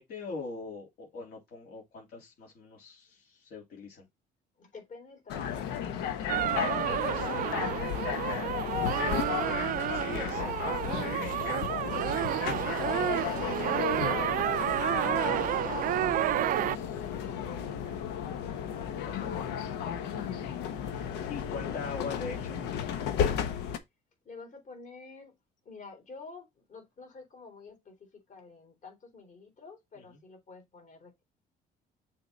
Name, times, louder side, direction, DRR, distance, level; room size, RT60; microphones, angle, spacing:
voice 1, 0.0-4.1 8.2-8.6 9.8-11.1 18.7-19.5 21.3-22.6 30.0-30.1, left 4 dB, 65° left, 2.9 m, -42 dB
voice 2, 4.6-6.5 6.9-8.8 9.6-10.3 13.0-15.5 16.6-18.0 21.5-22.1 24.2-25.4 25.7-31.2, left 4 dB, 50° left, 3.7 m, -49 dB
sound 1, 5.3-23.8, left 9 dB, 85° left, 1.1 m, -34 dB
sound 2, 6.3-16.8, right 13 dB, 55° right, 0.4 m, -30 dB
6.8 x 3.9 x 4.2 m
cardioid pair, 110°, 17 cm